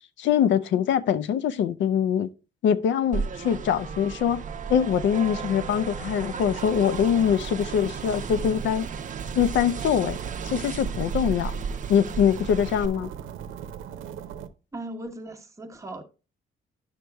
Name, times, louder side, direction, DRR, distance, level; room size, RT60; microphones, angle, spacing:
voice 1, 0.2-2.3 2.6-4.4 4.7-8.9 9.3-10.2 10.4-11.5 11.9-13.1, left 8 dB, 70° left, 0.5 m, -23 dB
sound 1, 3.1-12.9, right 6 dB, 40° right, 0.6 m, -34 dB
sound 2, 5.5-14.5, right 9 dB, 85° right, 0.7 m, -41 dB
voice 2, 14.7-16.0, right 1 dB, 15° right, 1.0 m, -38 dB
10.5 x 6.2 x 2.2 m
cardioid pair, 90°, 20 cm